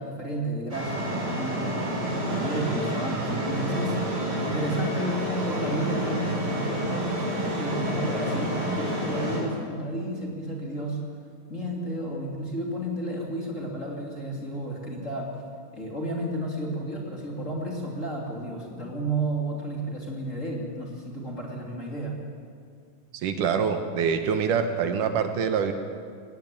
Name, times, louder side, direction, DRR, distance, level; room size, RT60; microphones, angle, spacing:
voice 1, 0.0-11.0 11.5-15.3 15.7-22.1, right 1 dB, 25° left, -1 dB, 2.9 m, -32 dB
sound 1, 0.7-9.4, right 1 dB, 20° right, 5.1 m, -29 dB
voice 2, 23.1-25.7, right 6 dB, 70° right, 7 dB, 2.5 m, -25 dB
18.5 x 18.0 x 9.1 m, 2.2 s
omnidirectional pair, 3.9 m